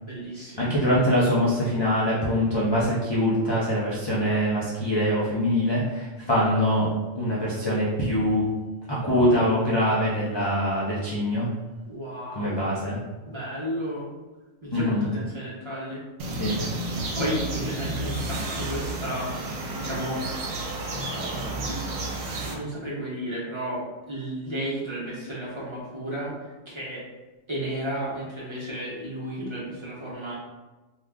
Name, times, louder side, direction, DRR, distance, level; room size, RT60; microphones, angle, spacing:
voice 1, 0.0-0.8 11.9-12.7 13.3-14.1 14.6-16.0 16.5-16.7 17.1-20.2 21.1-22.0 22.4-27.0 27.5-30.3, right 1 dB, 25° right, -8 dB, 0.8 m, -33 dB
voice 2, 0.6-6.9 7.2-8.4 8.9-11.5 12.3-13.0 14.7-15.1 16.4-16.5, equal, 40° left, -7 dB, 0.3 m, -23 dB
sound 1, 16.2-22.5, right 2 dB, 85° right, 1.0 m, -31 dB
2.8 x 2.3 x 3.5 m, 1.1 s
omnidirectional pair, 1.4 m